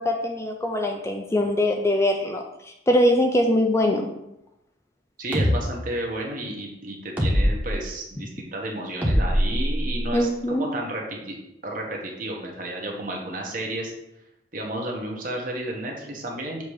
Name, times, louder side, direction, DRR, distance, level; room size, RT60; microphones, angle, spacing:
voice 1, 0.0-4.1 10.1-10.7, left 1 dB, 15° left, 2 dB, 0.4 m, -22 dB
voice 2, 5.2-11.4 11.6-13.9 14.5-16.6, right 1 dB, 45° right, 0 dB, 1.2 m, -32 dB
sound 1, 5.3-5.6 7.2-7.7 9.0-10.2, equal, 10° right, 1.0 m, -22 dB
7.0 x 2.9 x 4.8 m, 0.85 s
head